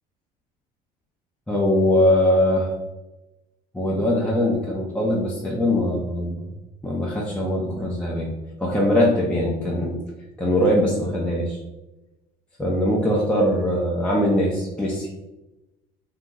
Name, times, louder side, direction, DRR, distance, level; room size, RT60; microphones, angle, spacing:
voice 1, 1.5-2.7 3.7-6.5 6.8-8.3 8.6-10.0 10.4-11.6 12.6-15.1, left 1 dB, 5° left, -4 dB, 0.5 m, -21 dB
2.8 x 2.4 x 3.7 m, 1.0 s
supercardioid pair, 105°, 17 cm